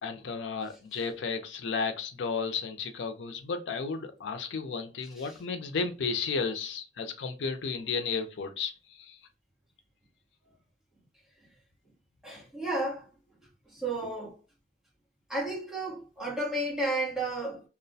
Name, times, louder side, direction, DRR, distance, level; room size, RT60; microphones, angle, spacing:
voice 1, 0.0-9.2, left 5 dB, 80° left, 0.4 m, -33 dB
voice 2, 12.2-13.1 13.7-14.4 15.3-17.6, right 2 dB, 5° right, 0.9 m, -32 dB
2.3 x 2.1 x 2.6 m
head